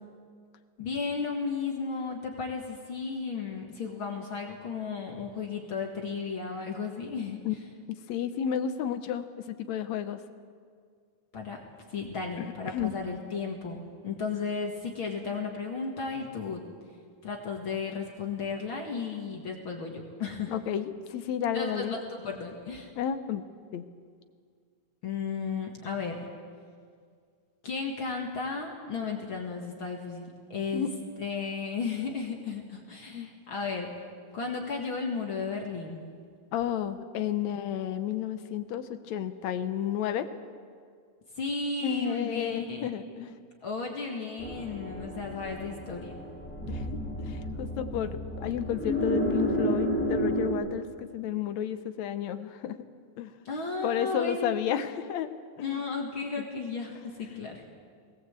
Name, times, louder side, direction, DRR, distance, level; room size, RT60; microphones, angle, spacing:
voice 1, 0.8-7.4 11.3-11.6 11.9-16.6 17.2-20.5 21.5-22.9 25.0-26.2 27.6-33.9 34.3-36.0 41.4-42.9 43.6-46.2 53.5-54.6 55.6-57.6, left 4 dB, 45° left, 1 dB, 2.3 m, -34 dB
voice 2, 7.9-10.2 12.4-12.9 20.5-22.0 23.0-23.4 23.7-23.9 30.7-30.9 33.1-33.3 36.5-40.3 41.8-43.4 46.7-52.8 53.2-53.3 53.8-55.3 55.6-55.8 56.4-56.5 56.9-57.0 57.3-57.4, left 9 dB, 70° left, 10 dB, 2.0 m, -32 dB
sound 1, 44.4-50.5, equal, 5° left, 2.6 m, -31 dB
19.5 x 18.5 x 8.1 m, 2.1 s
omnidirectional pair, 3.5 m